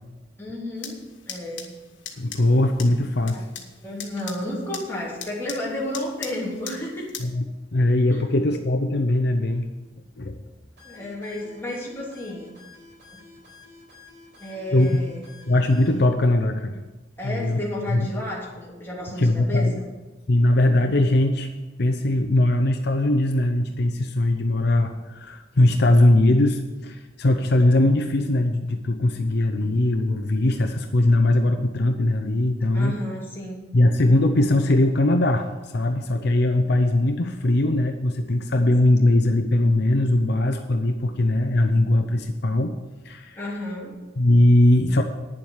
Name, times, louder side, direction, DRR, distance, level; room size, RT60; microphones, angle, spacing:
voice 1, 0.4-1.7 3.3-3.4 3.8-7.1 8.1-8.3 10.8-12.5 13.1-13.2 14.4-15.3 17.2-19.8 32.7-33.7 43.4-44.0, left 1 dB, 10° left, -5 dB, 3.0 m, -32 dB
sound 1, 0.8-7.3, left 7 dB, 80° left, 1.6 m, -41 dB
voice 2, 2.2-3.4 7.2-7.4 7.7-9.7 10.2-10.4 14.7-15.0 15.5-16.8 17.2-17.6 17.9-18.1 19.2-19.8 20.3-21.5 21.8-32.9 33.7-42.7 43.0-43.4 44.2-45.0, left 1 dB, 60° left, 6 dB, 0.7 m, -20 dB
sound 2, 10.8-16.1, left 4 dB, 65° right, 4.5 m, -49 dB
10.0 x 7.6 x 7.3 m, 1.2 s
head